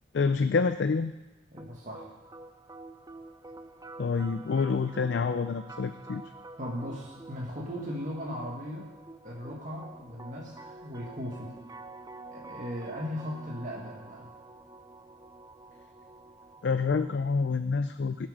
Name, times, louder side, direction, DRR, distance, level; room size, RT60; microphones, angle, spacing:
voice 1, 0.1-1.1 4.0-6.2 16.6-18.3, left 4 dB, 70° left, 10 dB, 0.4 m, -27 dB
voice 2, 1.5-2.1 6.6-8.9 9.2-11.5 12.3-14.3, equal, 40° right, -4 dB, 1.7 m, -37 dB
sound 1, 1.6-17.6, right 2 dB, 20° right, 0.5 m, -48 dB
17.0 x 7.5 x 5.1 m, 1.1 s
head